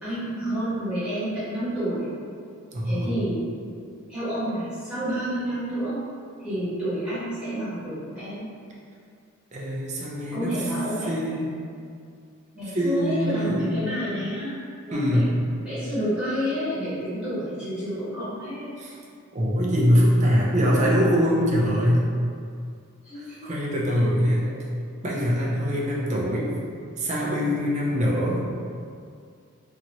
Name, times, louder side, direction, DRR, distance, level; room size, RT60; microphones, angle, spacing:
voice 1, 0.0-2.1 2.8-3.4 4.1-6.0 6.4-8.5 10.3-11.1 12.5-14.5 14.9-15.3 15.6-18.7 23.0-23.5 24.5-24.6 27.4-27.6, equal, 5° right, -16 dB, 1.5 m, -29 dB
voice 2, 2.7-3.1 9.5-10.6 11.1-11.5 12.7-13.7 14.9-15.3 18.8-18.9 19.3-22.1 23.4-24.5 25.0-26.5 27.0-28.4, equal, 35° right, -4 dB, 0.5 m, -23 dB
2.9 x 2.8 x 2.6 m, 2.3 s
head